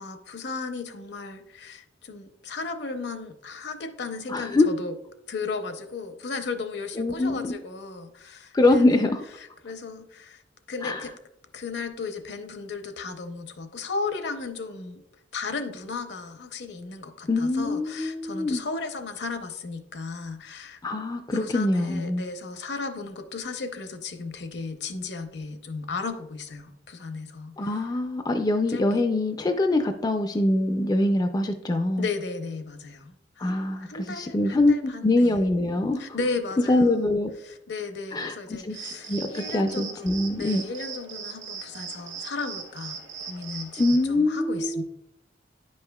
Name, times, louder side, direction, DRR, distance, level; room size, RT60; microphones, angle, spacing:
voice 1, 0.0-4.9 5.3-9.0 9.4-10.4 10.7-11.1 11.5-15.0 15.3-20.8 21.3-27.9 28.7-28.8 32.0-35.4 36.0-37.0 37.4-44.8, left 4 dB, 65° left, 8 dB, 0.7 m, -35 dB
voice 2, 4.3-4.7 7.0-7.5 8.5-9.2 10.8-11.0 17.3-18.6 20.8-22.2 27.6-32.1 33.4-36.2 36.7-37.3 38.1-38.8 39.1-40.6 43.8-44.8, left 2 dB, 20° left, 6 dB, 0.3 m, -24 dB
sound 1, 38.7-44.1, right 6 dB, 85° right, 1.3 m, -39 dB
9.4 x 5.4 x 2.3 m, 0.80 s
head